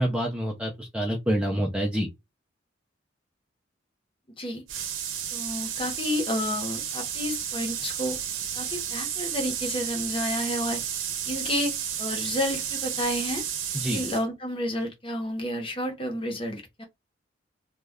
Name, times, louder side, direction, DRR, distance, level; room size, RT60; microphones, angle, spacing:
voice 1, 0.0-2.1 13.7-14.0, equal, 5° right, 0.4 m, -27 dB
sound 1, 4.7-14.2, right 9 dB, 85° right, 0.6 m, -32 dB
voice 2, 5.3-8.2 8.6-10.8 11.2-13.4 13.9-16.8, left 1 dB, 25° left, 0.8 m, -30 dB
2.3 x 2.1 x 3.4 m
head